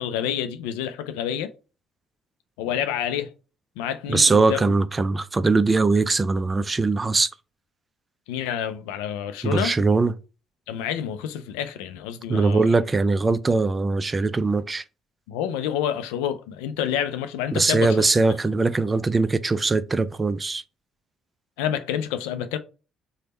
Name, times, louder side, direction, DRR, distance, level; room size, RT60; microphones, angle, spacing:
voice 1, 0.0-1.5 2.6-3.3 3.8-4.6 8.3-9.7 10.7-12.6 15.3-18.1 21.6-22.6, left 9 dB, 80° left, 0.4 m, -28 dB
voice 2, 4.1-7.3 9.4-10.2 12.3-14.8 17.5-20.6, right 3 dB, 30° right, 0.4 m, -21 dB
3.3 x 2.1 x 4.0 m
hypercardioid pair, 55°, 0 cm